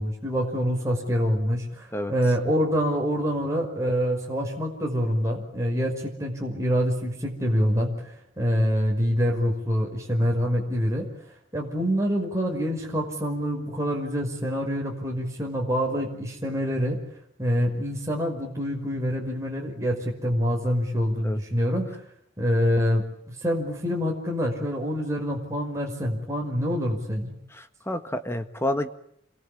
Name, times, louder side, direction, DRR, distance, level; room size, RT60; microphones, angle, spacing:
voice 1, 0.0-8.1 8.4-11.1 11.5-17.0 17.4-21.9 22.4-27.3, equal, 15° right, -1 dB, 5.6 m, -26 dB
voice 2, 27.5-28.9, left 1 dB, 15° left, 8 dB, 1.7 m, -29 dB
29.0 x 22.5 x 8.8 m, 0.73 s
head